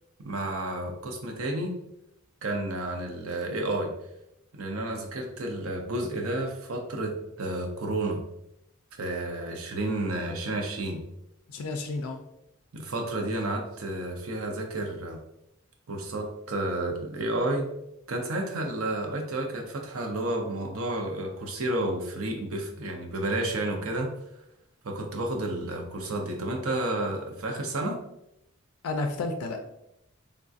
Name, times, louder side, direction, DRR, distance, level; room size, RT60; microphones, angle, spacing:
voice 1, 0.2-1.7 2.4-3.9 4.5-8.2 9.0-11.0 12.7-15.2 15.9-17.7 18.1-24.1 24.8-28.0, right 1 dB, 80° right, 2 dB, 0.6 m, -31 dB
voice 2, 11.5-12.2 28.8-29.6, left 3 dB, 85° left, 4 dB, 0.4 m, -31 dB
3.5 x 2.3 x 2.5 m, 0.82 s
head